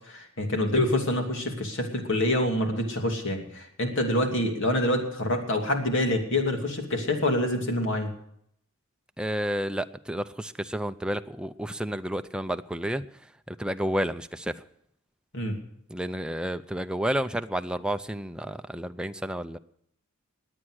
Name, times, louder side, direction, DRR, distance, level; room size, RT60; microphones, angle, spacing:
voice 1, 0.1-8.1 15.3-15.5, left 1 dB, 65° left, 2.7 m, -26 dB
voice 2, 9.2-13.1 13.5-14.6 15.9-19.6, equal, 5° right, 0.5 m, -31 dB
21.0 x 8.8 x 6.4 m
head